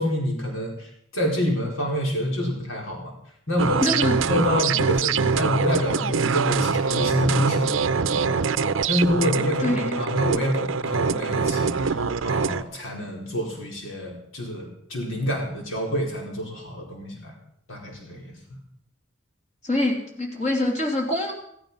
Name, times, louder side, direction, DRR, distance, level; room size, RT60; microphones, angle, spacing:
voice 1, 0.0-3.1 3.5-4.0 4.3-8.4 8.9-17.4 17.7-18.6, left 1 dB, 85° left, -1 dB, 4.7 m, -27 dB
sound 1, 3.6-12.6, right 5 dB, 75° right, 0.6 m, -24 dB
voice 2, 3.8-4.2 9.6-10.1 19.6-21.3, left 1 dB, 35° left, 0 dB, 2.7 m, -24 dB
15.5 x 14.5 x 5.5 m, 0.71 s
head